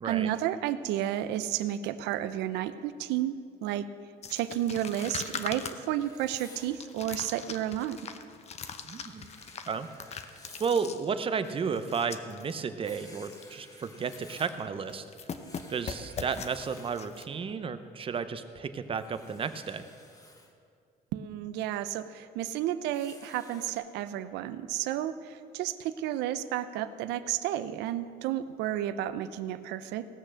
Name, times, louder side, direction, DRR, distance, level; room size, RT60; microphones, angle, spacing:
voice 1, 0.0-3.3 3.6-3.9 4.3-8.0 21.1-30.1, right 12 dB, 90° right, 13 dB, 0.6 m, -32 dB
sound 1, 4.2-12.5 12.8-12.9 13.2-13.6 13.8-14.6 14.9-17.2, left 6 dB, 40° left, 0.8 m, -41 dB
Writing, 6.0-6.8 8.9-10.8 12.8-14.6 15.2-17.1 18.9-20.5 22.9-23.8, left 2 dB, 20° left, 1.7 m, -54 dB
voice 2, 8.8-9.3 9.7-9.9 10.6-15.0 15.7-19.9, right 5 dB, 30° right, 11 dB, 0.7 m, -33 dB
17.5 x 6.5 x 6.3 m, 2.4 s
cardioid pair, 110°, 17 cm